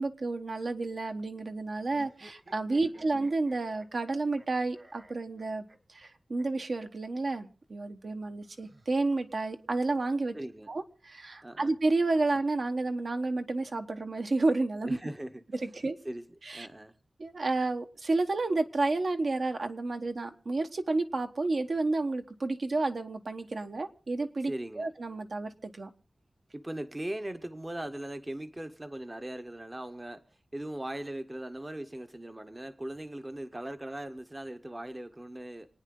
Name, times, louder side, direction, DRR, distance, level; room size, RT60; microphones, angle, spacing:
voice 1, 0.0-5.6 5.9-10.3 10.7-15.0 15.6-16.0 16.4-16.7 17.2-25.9, right 3 dB, 60° right, 5 dB, 1.3 m, -31 dB
sound 1, 1.9-4.5 4.7-6.1 6.4-6.5 6.8-6.9 7.2-7.4 8.4-9.4, right 1 dB, 40° right, 1.7 m, -56 dB
voice 2, 2.8-3.2 10.3-10.7 11.4-11.8 14.8-17.0 24.4-24.9 26.5-30.2 30.5-35.7, right 1 dB, 20° right, 9 dB, 0.9 m, -40 dB
28.0 x 9.5 x 3.8 m, 0.37 s
wide cardioid pair, 105°, 0 cm